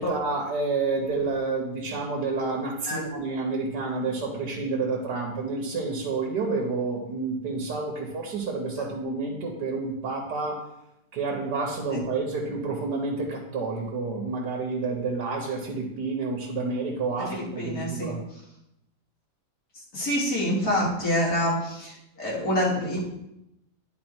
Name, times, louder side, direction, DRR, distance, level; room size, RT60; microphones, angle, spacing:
voice 1, 0.0-10.6 11.1-18.2, right 3 dB, 80° right, 0 dB, 1.6 m, -29 dB
voice 2, 17.3-18.2 19.9-23.1, equal, 60° left, -5 dB, 2.6 m, -27 dB
9.8 x 4.0 x 4.4 m, 0.86 s
omnidirectional pair, 1.8 m